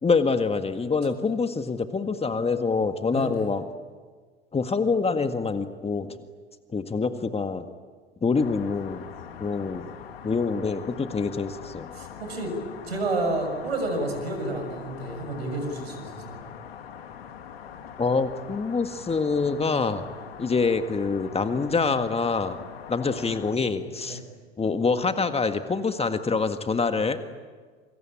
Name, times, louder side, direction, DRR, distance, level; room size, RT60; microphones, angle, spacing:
voice 1, 0.0-3.6 4.5-6.2 6.7-7.6 8.2-9.0 9.4-9.8 10.2-11.9 18.0-20.0 20.4-22.6 22.9-24.2 24.6-27.2, left 4 dB, 20° left, 8 dB, 1.8 m, -25 dB
voice 2, 3.1-3.5 11.9-12.5 12.9-16.4 24.0-24.2, right 2 dB, 85° right, 5 dB, 6.8 m, -30 dB
sound 1, 8.3-23.6, left 8 dB, 75° left, 2.3 m, -42 dB
27.5 x 25.0 x 8.7 m, 1.5 s
figure-of-eight pair, 75°, 30 cm